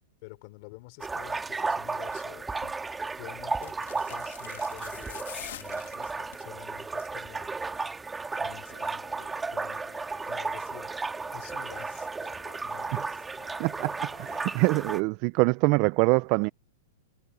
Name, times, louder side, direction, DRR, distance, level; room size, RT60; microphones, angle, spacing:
voice 1, 0.2-2.5 3.2-5.2 5.5-7.5 8.4-10.0 10.2-13.3, left 26 dB, 50° left, 3.7 m, -49 dB
sound 1, 1.0-15.0, right 4 dB, 10° right, 2.3 m, -34 dB
sound 2, 2.5-2.8 3.5-6.5 6.9-7.2 7.5-7.6, left 12 dB, 70° left, 2.7 m, -45 dB
sound 3, 8.5-14.7, left 9 dB, 85° left, 7.2 m, -56 dB
voice 2, 13.6-16.5, right 26 dB, 45° right, 0.5 m, -24 dB
hypercardioid pair, 140°, 0 cm